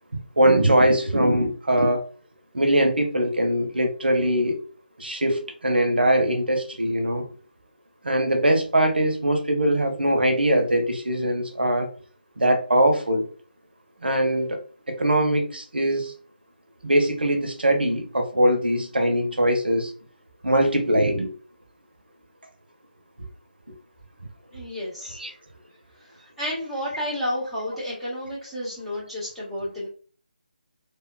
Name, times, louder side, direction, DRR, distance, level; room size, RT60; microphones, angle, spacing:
voice 1, 0.4-2.1 2.5-4.6 5.0-7.3 8.0-11.9 12.4-13.3 14.0-14.6 14.9-16.1 16.8-19.9 20.4-21.3 25.1-25.3, right 1 dB, 75° right, 0.9 m, -21 dB
voice 2, 24.5-25.2 26.4-29.9, left 1 dB, ahead, 0.8 m, -31 dB
3.4 x 2.3 x 2.2 m
figure-of-eight pair, 155°, 5 cm